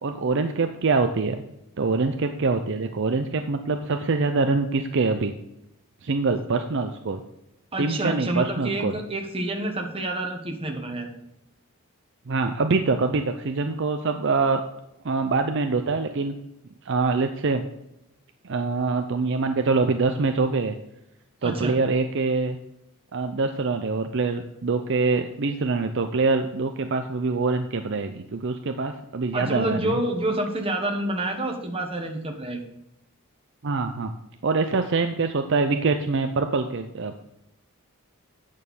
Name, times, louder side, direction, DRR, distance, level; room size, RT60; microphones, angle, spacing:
voice 1, 0.0-1.4 1.8-5.3 6.0-7.2 7.8-8.9 12.3-14.6 15.0-16.3 16.9-17.6 18.4-20.7 21.4-22.6 23.1-29.9 33.6-34.1 34.4-37.2, right 3 dB, 55° right, 7 dB, 0.6 m, -24 dB
voice 2, 7.7-11.1 21.4-21.8 29.3-32.6, right 1 dB, 25° right, 2 dB, 1.4 m, -28 dB
9.0 x 6.5 x 5.4 m, 0.85 s
head